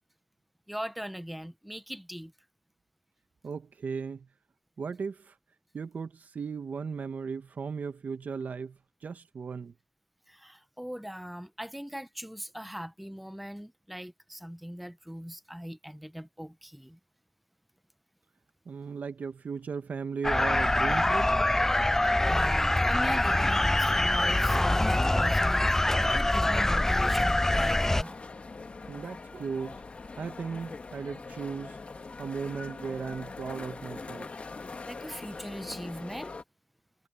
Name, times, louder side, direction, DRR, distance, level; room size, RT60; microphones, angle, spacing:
voice 1, 0.7-2.3 10.3-17.0 22.2-28.2 34.9-36.3, equal, ahead, 0.8 m, -40 dB
voice 2, 3.4-4.3 4.8-5.3 5.7-9.7 18.6-21.3 28.9-29.8 30.2-31.8 32.2-34.3, right 5 dB, 75° right, 1.6 m, -36 dB
sound 1, 20.2-28.0, left 1 dB, 15° left, 0.4 m, -24 dB
sound 2, 24.1-33.2 33.5-33.6, right 3 dB, 40° right, 5.5 m, -58 dB
sound 3, 26.7-36.4, left 3 dB, 50° left, 1.8 m, -42 dB
wide cardioid pair, 80°, 3 cm